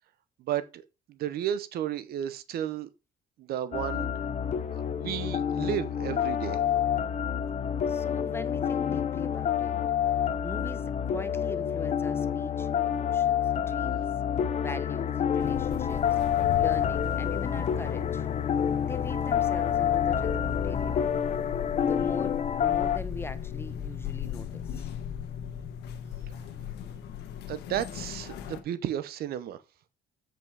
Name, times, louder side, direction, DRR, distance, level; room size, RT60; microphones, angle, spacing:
voice 1, 0.4-2.9 3.4-4.1 4.8-6.6 27.5-29.6, right 11 dB, 65° right, 0.8 m, -33 dB
sound 1, 3.7-23.0, left 9 dB, 45° left, 0.9 m, -28 dB
voice 2, 7.9-10.1 10.4-14.1 14.6-16.1 16.6-18.3 18.8-21.1 21.8-24.9, left 2 dB, 15° left, 1.0 m, -41 dB
sound 2, 15.4-28.6, left 8 dB, 80° left, 1.3 m, -37 dB
7.8 x 5.2 x 4.8 m
cardioid pair, 110°, 17 cm